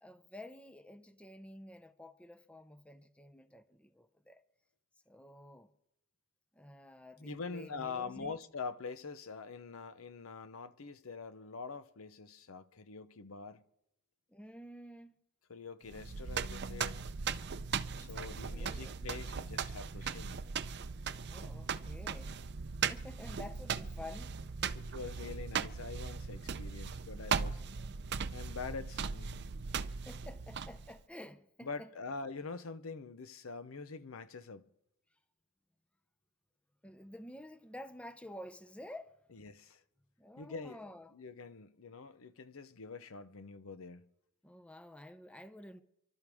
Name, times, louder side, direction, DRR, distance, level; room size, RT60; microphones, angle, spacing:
voice 1, 0.0-4.4 5.1-5.7 6.5-8.4 14.3-15.2 18.1-19.0 21.2-22.4 22.9-24.4 27.4-28.0 30.1-31.9 36.8-39.2 40.2-41.1 44.4-45.8, left 1 dB, 5° left, 0.6 m, -50 dB
voice 2, 7.2-13.6 15.5-17.1 18.0-20.4 24.7-27.7 28.3-29.4 31.6-34.6 39.3-39.8 40.4-40.8 41.1-44.1, left 4 dB, 70° left, 0.8 m, -45 dB
sound 1, 15.9-31.0, right 6 dB, 55° right, 0.6 m, -38 dB
29.5 x 12.5 x 3.5 m
head